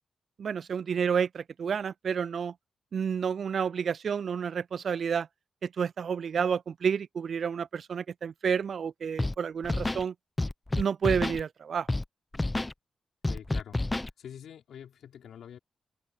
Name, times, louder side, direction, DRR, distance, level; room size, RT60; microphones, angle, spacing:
voice 1, 0.4-2.5 2.9-5.3 5.6-10.1 10.8-11.9, right 7 dB, 65° right, 0.3 m, -30 dB
Scratching (performance technique), 9.2-9.4 9.6-10.0 10.4-11.4 11.9-12.0 12.3-12.7 13.2-14.1, left 2 dB, 20° left, 0.7 m, -29 dB
voice 2, 13.3-15.6, left 9 dB, 80° left, 4.6 m, -46 dB
open air
cardioid pair, 60°, 0 cm